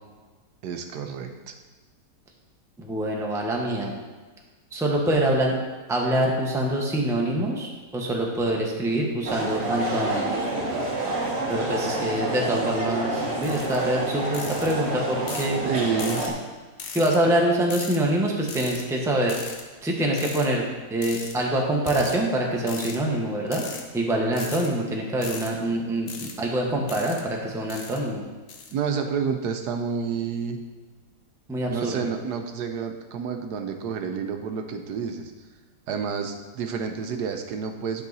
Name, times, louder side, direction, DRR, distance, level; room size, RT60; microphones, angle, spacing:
voice 1, 0.6-1.5 15.6-16.3 28.7-30.6 31.7-35.3 35.9-38.0, right 6 dB, 75° right, 5 dB, 1.2 m, -29 dB
voice 2, 2.8-3.9 4.7-5.5 5.9-10.3 11.5-15.6 16.9-19.3 19.8-23.6 23.9-28.2 31.5-32.1, right 1 dB, ahead, -1 dB, 0.8 m, -25 dB
sound 1, 9.3-16.3, right 2 dB, 45° right, 1.3 m, -28 dB
sound 2, 13.4-13.8 14.3-14.7 15.3-15.5 16.0-16.3 16.8-17.2 17.7-18.0 18.5-18.8 19.3-19.6 20.2-20.5 21.0-21.3 21.9-22.2 22.7-23.0 23.5-23.8 24.3-24.7 25.2-25.5 26.1-26.3 26.9-27.2 27.7-28.0 28.5-28.7, left 5 dB, 60° left, 1.2 m, -37 dB
10.0 x 5.6 x 4.0 m, 1.3 s
omnidirectional pair, 1.8 m